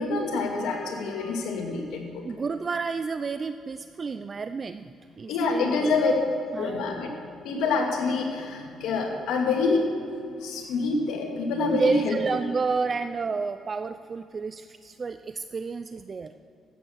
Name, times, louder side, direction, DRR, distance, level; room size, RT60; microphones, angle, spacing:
voice 1, 0.0-2.3 5.3-6.1 6.6-7.1 7.4-9.9 10.4-12.2, left 3 dB, 90° left, 2 dB, 2.1 m, -26 dB
voice 2, 2.2-5.7 6.5-6.9 11.7-16.3, right 4 dB, 40° right, 10 dB, 0.4 m, -30 dB
13.5 x 9.0 x 6.5 m, 2.5 s
cardioid pair, 90°, 0 cm